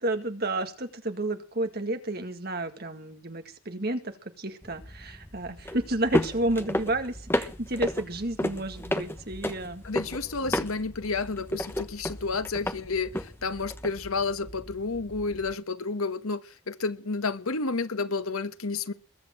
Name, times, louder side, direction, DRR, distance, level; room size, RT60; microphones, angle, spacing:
voice 1, 0.0-9.8, right 1 dB, 45° right, 2.1 m, -31 dB
sound 1, 4.6-15.5, left 1 dB, 10° left, 1.1 m, -34 dB
voice 2, 9.8-16.4 16.7-18.9, left 4 dB, 85° left, 1.3 m, -31 dB
21.5 x 8.3 x 7.6 m
head